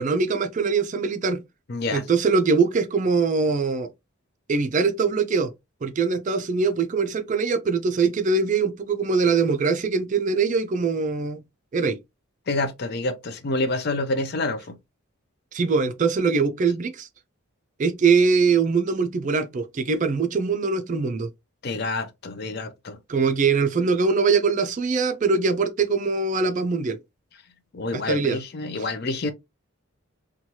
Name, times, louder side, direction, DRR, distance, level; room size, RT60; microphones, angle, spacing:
voice 1, 0.0-1.4 1.9-3.9 4.5-5.5 5.8-11.4 11.7-12.0 15.5-17.1 17.8-21.3 23.1-27.0 27.9-28.4, right 4 dB, 35° right, 0.4 m, -22 dB
voice 2, 1.7-2.0 12.5-14.8 21.6-23.0 27.7-29.3, left 2 dB, 50° left, 0.5 m, -27 dB
3.0 x 2.3 x 2.7 m
head